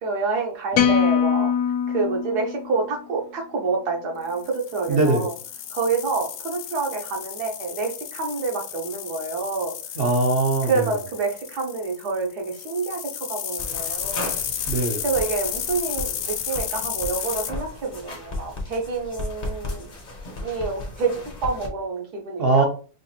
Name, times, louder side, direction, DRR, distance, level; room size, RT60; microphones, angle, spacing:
voice 1, 0.0-1.5 1.9-5.3 5.7-9.7 10.7-13.0 13.3-14.3 15.0-19.9 20.4-22.6, right 4 dB, 70° right, 1 dB, 1.5 m, -27 dB
sound 1, 0.7-3.1, left 7 dB, 70° left, 1.1 m, -22 dB
sound 2, 4.3-17.5, left 9 dB, 85° left, 1.2 m, -33 dB
voice 2, 4.9-5.3 10.0-11.0 14.7-15.1 22.4-22.6, right 2 dB, 55° right, 2 dB, 0.7 m, -21 dB
sound 3, 13.6-21.7, left 2 dB, 35° left, 0.9 m, -35 dB
5.2 x 2.5 x 2.8 m, 0.38 s
omnidirectional pair, 1.8 m